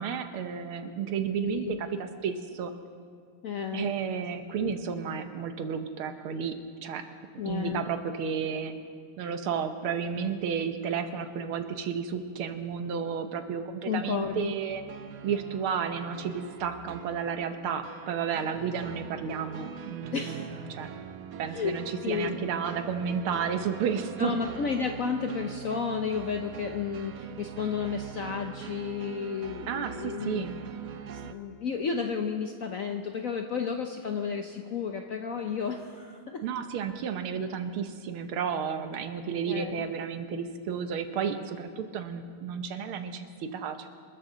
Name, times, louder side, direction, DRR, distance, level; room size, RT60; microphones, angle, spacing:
voice 1, 0.0-2.7 3.7-6.6 6.8-7.0 7.5-8.7 9.2-14.8 15.2-20.9 21.4-24.4 29.7-30.6 36.4-43.9, right 7 dB, 85° right, 8 dB, 1.9 m, -32 dB
voice 2, 1.4-1.8 3.4-3.9 4.6-4.8 7.4-7.9 13.9-14.5 20.1-20.5 21.5-21.7 22.0-22.4 24.2-30.5 31.1-36.4 39.5-39.9, left 6 dB, 65° left, 4 dB, 0.8 m, -32 dB
sound 1, 14.7-31.3, right 8 dB, 65° right, 0.9 m, -43 dB
26.0 x 13.5 x 3.9 m, 2.1 s
omnidirectional pair, 2.3 m